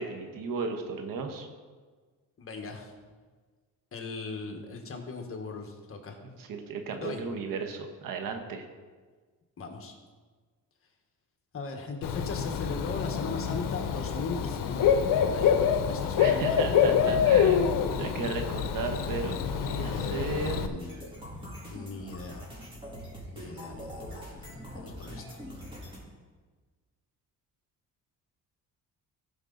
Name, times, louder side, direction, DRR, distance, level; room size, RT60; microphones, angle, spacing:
voice 1, 0.0-1.5 6.2-8.6 16.2-20.6, right 4 dB, 80° right, 5 dB, 1.3 m, -35 dB
voice 2, 2.4-2.9 3.9-6.2 7.0-7.2 9.6-9.9 11.5-17.2 19.8-21.2 21.6-22.4 23.3-25.4, left 3 dB, 40° left, 3 dB, 1.5 m, -38 dB
Bird / Cricket, 12.0-20.7, left 8 dB, 75° left, 0.8 m, -26 dB
sound 1, 20.8-26.0, equal, 15° right, 3.3 m, -43 dB
16.0 x 5.4 x 4.0 m, 1.4 s
cardioid pair, 115°, 33 cm